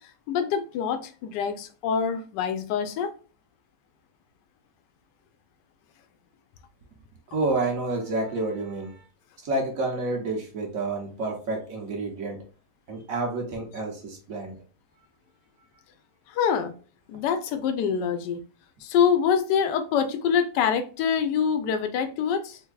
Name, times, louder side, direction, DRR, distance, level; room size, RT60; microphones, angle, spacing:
voice 1, 0.3-3.1 16.3-16.7 17.1-18.4 18.8-22.6, left 7 dB, 80° left, 8 dB, 1.2 m, -25 dB
voice 2, 7.3-9.0 9.4-12.4 12.9-14.5, right 2 dB, 55° right, 1 dB, 1.1 m, -29 dB
3.3 x 3.3 x 2.3 m, 0.37 s
omnidirectional pair, 1.9 m